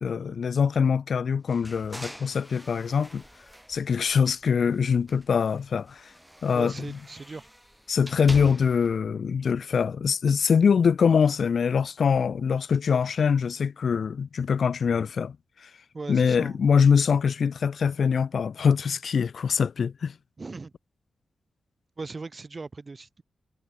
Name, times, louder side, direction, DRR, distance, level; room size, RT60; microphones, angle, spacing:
voice 1, 0.0-3.2 3.7-6.1 6.4-6.7 7.9-15.4 15.6-15.7 16.1-20.1, left 6 dB, 60° left, 0.6 m, -23 dB
sound 1, 1.5-4.7 5.0-9.0, equal, ahead, 0.7 m, -44 dB
voice 2, 6.5-7.5 15.9-16.6 20.4-20.7 22.0-23.2, right 3 dB, 30° right, 3.4 m, -38 dB
wide cardioid pair, 140°, 0 cm